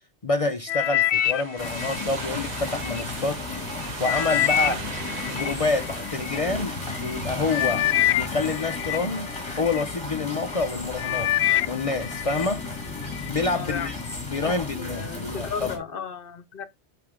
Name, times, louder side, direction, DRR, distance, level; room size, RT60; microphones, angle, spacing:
voice 1, 0.2-3.6 4.0-4.8 5.3-9.3 9.6-11.3 11.7-12.6 13.3-14.0 14.3-15.7, left 3 dB, 40° left, 0.6 m, -27 dB
sound 1, 0.7-3.0 3.5-6.4 7.1-7.2 7.5-9.9 10.4-10.7 11.0-12.5 12.9-13.3 13.9-14.0, left 12 dB, 75° left, 0.8 m, -26 dB
sound 2, 1.2-7.7, right 7 dB, 50° right, 0.6 m, -40 dB
sound 3, 1.6-15.8, left 3 dB, 25° left, 2.3 m, -34 dB
voice 2, 13.5-13.9 14.4-16.7, left 6 dB, 55° left, 1.0 m, -35 dB
9.7 x 3.4 x 3.6 m
omnidirectional pair, 1.1 m